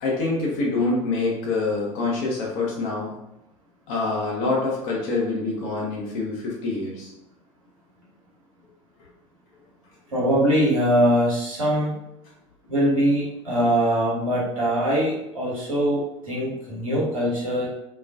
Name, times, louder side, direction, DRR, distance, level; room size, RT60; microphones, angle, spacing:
voice 1, 0.0-3.1 3.9-7.1, left 3 dB, 50° left, -3 dB, 0.8 m, -26 dB
voice 2, 10.1-11.9 12.7-17.7, equal, 80° right, -7 dB, 1.0 m, -22 dB
2.3 x 2.3 x 2.4 m, 0.84 s
figure-of-eight pair, 75°, 18 cm